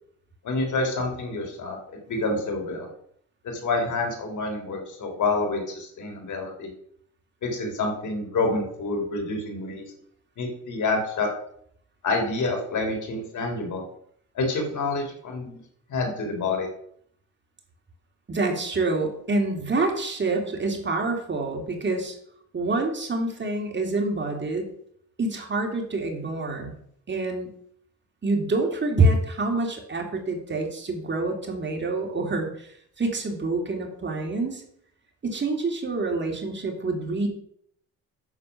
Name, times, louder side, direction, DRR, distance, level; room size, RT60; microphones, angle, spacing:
voice 1, 0.4-2.9 3.4-6.7 7.4-9.8 10.4-11.3 12.0-13.8 14.3-15.6 15.9-16.7, left 3 dB, 70° left, 2 dB, 3.4 m, -28 dB
voice 2, 18.3-22.1 22.5-24.7 25.2-26.7 27.1-27.5 28.2-32.7 33.0-34.6 35.2-37.3, right 2 dB, 35° right, 2 dB, 2.7 m, -26 dB
9.7 x 7.1 x 5.8 m, 0.67 s
cardioid pair, 110°, 31 cm